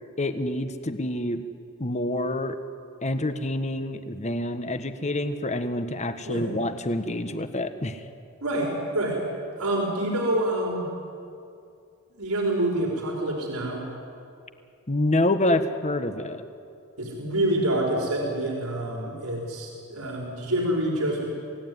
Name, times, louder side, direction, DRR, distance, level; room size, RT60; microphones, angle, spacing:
voice 1, 0.2-1.4 1.8-2.5 3.0-8.0 14.9-16.4, left 1 dB, 30° left, 9 dB, 1.3 m, -27 dB
voice 2, 8.4-9.2 9.6-10.9 12.2-13.8 17.0-21.3, right 1 dB, 90° right, -1 dB, 4.9 m, -27 dB
27.5 x 17.5 x 9.6 m, 2.5 s
head